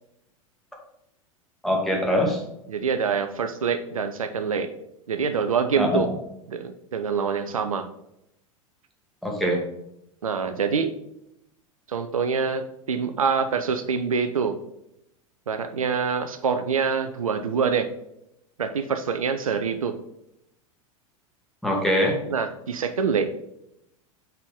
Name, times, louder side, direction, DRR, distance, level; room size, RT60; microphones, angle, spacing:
voice 1, 1.6-2.4 5.8-6.0 9.2-9.6 21.6-22.2, equal, ahead, -1 dB, 1.9 m, -23 dB
voice 2, 2.7-4.7 5.1-6.1 6.5-7.9 10.2-10.9 11.9-14.5 15.5-17.9 18.6-19.9 22.3-23.3, right 6 dB, 75° right, 7 dB, 0.6 m, -25 dB
5.8 x 5.8 x 3.5 m, 0.81 s
figure-of-eight pair, 85°, 18 cm